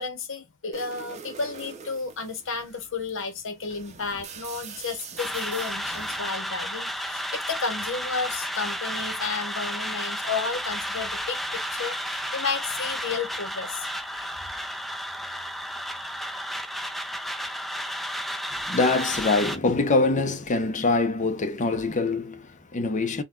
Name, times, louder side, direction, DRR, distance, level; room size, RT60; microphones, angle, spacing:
voice 1, 0.0-14.4, left 4 dB, 65° left, 1.0 m, -32 dB
sound 1, 0.7-6.3, right 6 dB, 35° right, 0.7 m, -43 dB
sound 2, 5.2-19.6, equal, ahead, 0.4 m, -32 dB
voice 2, 18.6-23.2, left 3 dB, 35° left, 0.7 m, -24 dB
3.9 x 2.2 x 2.3 m
head